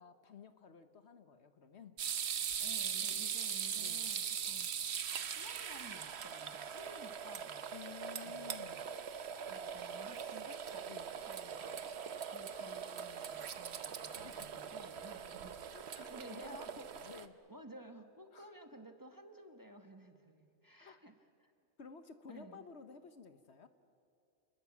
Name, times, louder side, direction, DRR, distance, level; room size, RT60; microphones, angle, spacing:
voice 1, 0.0-2.0 3.7-4.0 7.7-8.9 10.8-11.1 14.0-14.5 15.7-17.4 18.3-18.5 20.8-21.0 21.8-23.7, left 6 dB, 60° left, 10 dB, 1.2 m, -54 dB
sound 1, 2.0-17.3, right 8 dB, 60° right, 1.1 m, -41 dB
voice 2, 2.6-4.7 5.4-7.6 8.2-8.5 9.5-10.9 11.2-11.8 12.3-15.6 16.0-16.9 17.5-21.1 21.4-21.5 22.3-22.6, right 1 dB, 15° right, 5 dB, 1.3 m, -54 dB
sound 2, 9.8-10.9 11.9-12.6, left 1 dB, 30° left, 6.8 m, -71 dB
29.0 x 21.0 x 7.4 m, 2.5 s
omnidirectional pair, 1.3 m